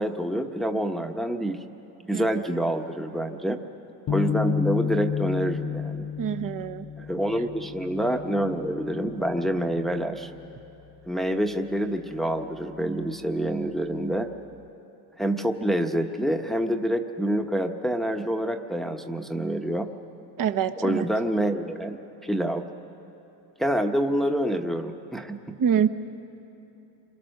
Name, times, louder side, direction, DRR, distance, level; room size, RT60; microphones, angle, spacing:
voice 1, 0.0-1.6 2.1-3.6 4.1-6.1 7.0-10.3 11.1-14.3 15.2-19.9 20.8-22.0 22.2-22.6 23.6-25.4, right 1 dB, ahead, 5 dB, 1.1 m, -27 dB
sound 1, 4.1-10.5, left 7 dB, 40° left, 0.6 m, -32 dB
voice 2, 6.2-6.9 20.4-21.1 25.6-25.9, right 8 dB, 45° right, 10 dB, 1.1 m, -25 dB
28.0 x 23.0 x 6.6 m, 2.9 s
cardioid pair, 105°, 46 cm